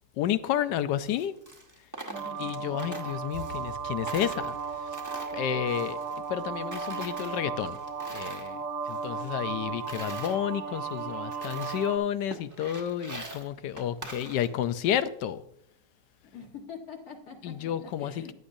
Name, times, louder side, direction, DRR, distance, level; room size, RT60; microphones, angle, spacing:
voice 1, 0.2-1.3 2.4-5.0 5.3-6.0 6.3-7.8 8.1-8.6 8.9-15.4 17.4-18.3, left 10 dB, 80° left, 1.3 m, -31 dB
Coin (dropping), 1.0-3.8 4.1-6.4 6.7-8.5 8.8-10.4 10.9-11.0 11.3-11.9 12.3-14.7, right 2 dB, 15° right, 0.8 m, -44 dB
voice 2, 2.0-2.5 6.1-6.2 16.3-17.5 18.0-18.3, left 5 dB, 60° left, 1.9 m, -44 dB
sound 1, 2.1-12.0, right 6 dB, 55° right, 1.5 m, -35 dB
14.5 x 10.0 x 2.6 m
omnidirectional pair, 1.8 m